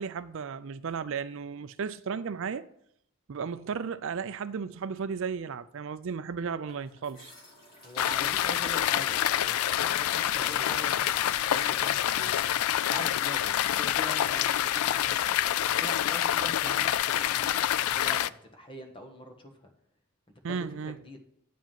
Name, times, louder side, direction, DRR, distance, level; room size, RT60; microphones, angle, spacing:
voice 1, 0.0-2.7 3.3-7.3 20.4-21.0, right 6 dB, 60° right, 0.4 m, -34 dB
sound 1, 6.7-13.7 13.9-14.0, left 1 dB, 45° left, 2.8 m, -50 dB
voice 2, 7.8-12.3 12.7-15.2 15.5-19.5 20.5-20.6 20.8-21.2, equal, 25° left, 1.4 m, -43 dB
sound 2, 8.0-18.3, left 11 dB, 85° left, 0.3 m, -27 dB
9.1 x 4.9 x 7.5 m
head